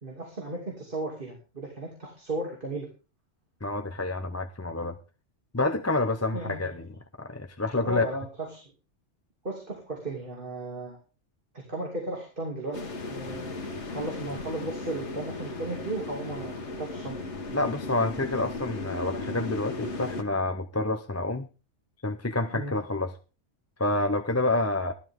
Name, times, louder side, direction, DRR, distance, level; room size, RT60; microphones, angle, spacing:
voice 1, 0.0-2.9 6.3-6.8 7.8-8.6 9.4-11.0 11.7-12.8 13.1-13.6 13.9-17.2 22.5-22.7, right 2 dB, 45° right, 3.1 m, -35 dB
voice 2, 3.6-5.0 5.5-8.0 17.5-21.5 22.0-23.1 23.8-24.9, left 2 dB, 15° left, 0.6 m, -28 dB
sound 1, 12.7-20.2, left 3 dB, 70° left, 1.8 m, -36 dB
14.5 x 12.0 x 3.7 m
omnidirectional pair, 1.2 m